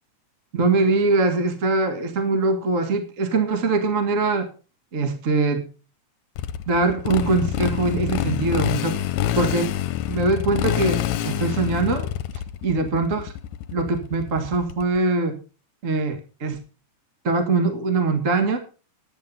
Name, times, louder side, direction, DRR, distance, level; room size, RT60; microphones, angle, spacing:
voice 1, 0.5-4.5 4.9-5.7 6.7-9.0 9.3-9.7 10.1-12.1 12.6-13.3 13.7-15.4 15.8-16.6 17.2-18.6, right 3 dB, 35° right, 7 dB, 1.6 m, -22 dB
Motorcycle, 6.4-15.0, left 12 dB, 80° left, 2.1 m, -27 dB
10.5 x 9.1 x 5.4 m, 0.34 s
omnidirectional pair, 3.3 m